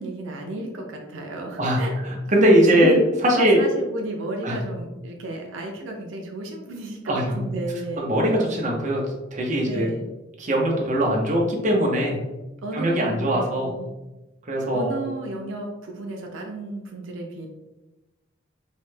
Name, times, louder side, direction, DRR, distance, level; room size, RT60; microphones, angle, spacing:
voice 1, 0.0-2.0 2.7-3.0 3.4-8.1 9.6-10.1 12.6-13.9 14.7-17.5, right 2 dB, 80° right, 1 dB, 0.5 m, -32 dB
voice 2, 1.6-3.0 3.2-3.6 4.4-4.6 7.1-7.4 8.0-9.0 9.3-9.9 10.4-12.2 12.7-13.7 14.5-14.9, equal, 40° right, -1 dB, 0.6 m, -21 dB
3.1 x 2.1 x 3.2 m, 1.0 s
head